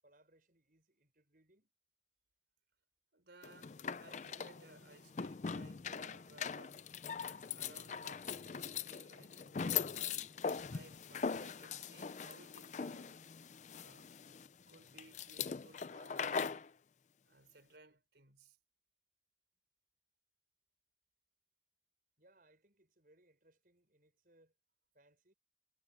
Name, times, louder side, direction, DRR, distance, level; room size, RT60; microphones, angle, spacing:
voice 1, 0.0-1.7 22.2-24.6 24.9-25.3, right 1 dB, 50° right, 6.9 m, -70 dB
voice 2, 3.1-6.8 7.2-10.3 10.7-13.3 13.7-14.1 14.7-16.5 17.2-18.6, right 2 dB, 70° right, 4.0 m, -61 dB
sound 1, 3.4-16.7, left 6 dB, 40° left, 0.4 m, -41 dB
head